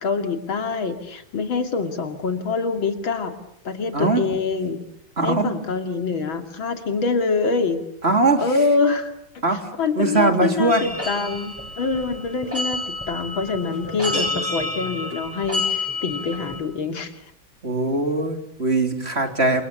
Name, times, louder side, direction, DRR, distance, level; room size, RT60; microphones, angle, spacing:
voice 1, 0.0-3.3 3.7-4.8 5.2-7.8 8.4-17.1, left 4 dB, 80° left, 7 dB, 3.3 m, -25 dB
voice 2, 3.9-4.2 5.2-5.5 8.0-8.4 9.4-9.6 10.0-10.9 17.6-19.6, right 2 dB, 30° right, 6 dB, 3.7 m, -20 dB
sound 1, 10.7-16.6, left 2 dB, 5° right, 6.7 m, -29 dB
29.0 x 27.5 x 7.0 m, 0.70 s
omnidirectional pair, 2.1 m